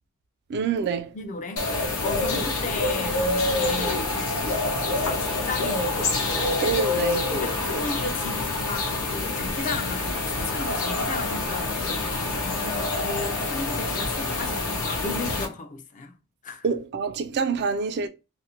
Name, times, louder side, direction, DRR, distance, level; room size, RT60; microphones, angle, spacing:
voice 1, 0.5-1.2 2.3-2.4 3.6-3.7 6.6-7.3 16.6-18.1, right 5 dB, 50° right, 0.3 m, -27 dB
voice 2, 1.1-4.1 5.0-6.8 7.3-16.1 16.4-16.6, left 3 dB, 35° left, 0.4 m, -35 dB
sound 1, 1.6-15.5, left 2 dB, 85° left, 0.7 m, -26 dB
2.5 x 2.0 x 2.8 m
head